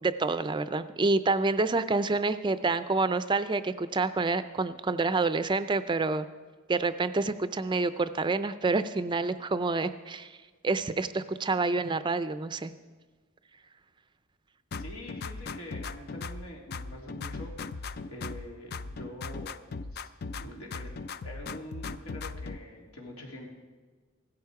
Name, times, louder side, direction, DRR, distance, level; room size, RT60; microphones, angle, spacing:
voice 1, 0.0-6.3 6.7-10.4 10.6-12.7, right 3 dB, 20° right, 12 dB, 0.4 m, -28 dB
sound 1, 14.7-16.5 16.7-18.5 18.7-20.5 20.7-22.6, left 4 dB, 50° left, 0.4 m, -38 dB
voice 2, 14.8-19.6 19.9-20.0 20.4-23.5, equal, 90° left, -1 dB, 3.1 m, -45 dB
16.0 x 12.5 x 4.7 m, 1.4 s
head